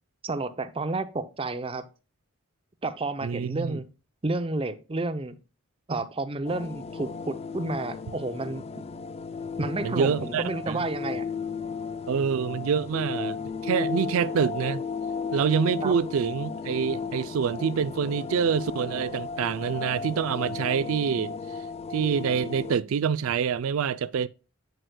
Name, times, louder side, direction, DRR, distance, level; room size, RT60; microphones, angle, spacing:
voice 1, 0.2-1.8 2.8-3.8 4.2-5.4 5.9-8.8 9.6-11.2 15.8-15.9, right 2 dB, 25° right, 0.5 m, -31 dB
voice 2, 3.2-3.8 9.8-10.8 12.1-14.8 15.3-21.4 21.9-24.3, right 7 dB, 75° right, 0.3 m, -26 dB
sound 1, 6.4-22.7, left 5 dB, 30° left, 0.3 m, -35 dB
7.8 x 7.8 x 2.2 m
head